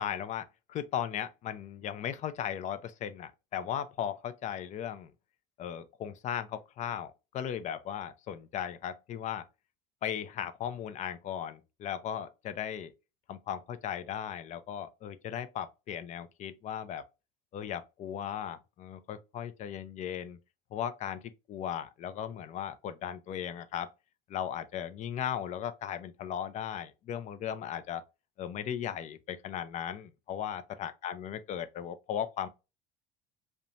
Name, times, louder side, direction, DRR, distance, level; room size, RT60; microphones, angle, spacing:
voice 1, 0.0-5.1 5.6-9.4 10.0-12.9 13.3-17.0 17.5-20.4 20.7-21.2 21.5-23.9 24.3-28.0 28.4-32.5, left 9 dB, 40° left, 0.4 m, -37 dB
2.5 x 2.2 x 2.8 m
supercardioid pair, 110°, 19 cm